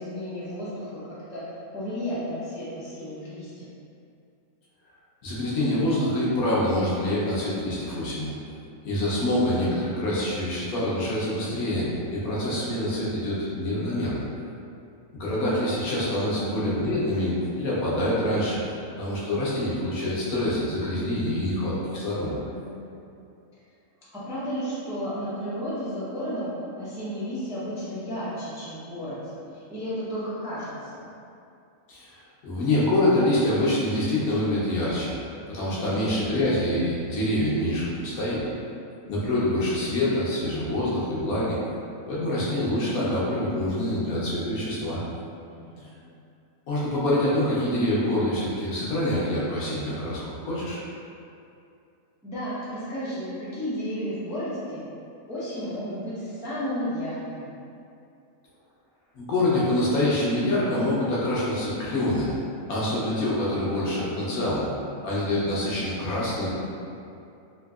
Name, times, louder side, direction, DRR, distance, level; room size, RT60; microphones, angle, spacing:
voice 1, 0.0-1.4 1.7-3.7 22.2-23.1 24.1-31.0 35.6-36.4 45.5-46.1 52.2-54.8 55.3-57.5, equal, 5° right, -11 dB, 0.4 m, -33 dB
voice 2, 5.2-8.3 8.8-14.2 15.1-18.6 19.0-22.4 31.9-35.2 35.5-38.5 39.1-41.6 42.1-45.0 46.7-50.8 59.1-62.4 62.7-64.7 65.0-66.6, left 1 dB, 75° left, -8 dB, 1.3 m, -26 dB
3.7 x 2.7 x 2.3 m, 2.6 s
omnidirectional pair, 1.5 m